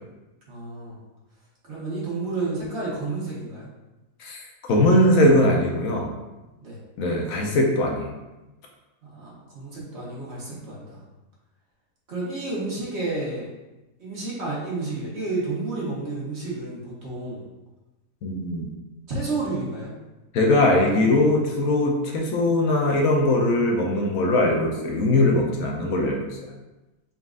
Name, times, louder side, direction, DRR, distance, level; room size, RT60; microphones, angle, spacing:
voice 1, 0.5-1.0 1.7-3.7 6.6-6.8 9.1-11.0 12.1-13.5 14.0-17.4 19.1-19.9, right 3 dB, 50° right, -6 dB, 1.4 m, -31 dB
voice 2, 4.7-6.1 7.0-8.1 18.2-18.7 20.3-26.3, left 1 dB, 70° left, 1 dB, 1.1 m, -20 dB
4.0 x 3.7 x 2.4 m, 1.0 s
omnidirectional pair, 1.6 m